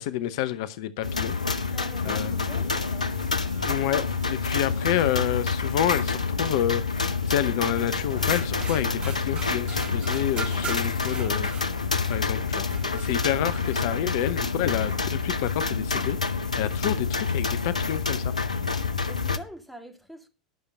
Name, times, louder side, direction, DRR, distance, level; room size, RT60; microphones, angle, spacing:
voice 1, 0.0-1.3 2.0-2.8 3.6-11.5 12.1-18.3, left 11 dB, 55° left, 0.7 m, -29 dB
sound 1, 1.0-19.4, left 4 dB, 85° left, 0.8 m, -28 dB
voice 2, 1.7-3.1 19.0-20.3, right 1 dB, ahead, 2.1 m, -45 dB
sound 2, 2.0-8.7, equal, 70° right, 3.5 m, -47 dB
sound 3, 7.9-19.0, right 5 dB, 25° right, 2.2 m, -43 dB
11.5 x 6.8 x 5.4 m
figure-of-eight pair, 85°, 4 cm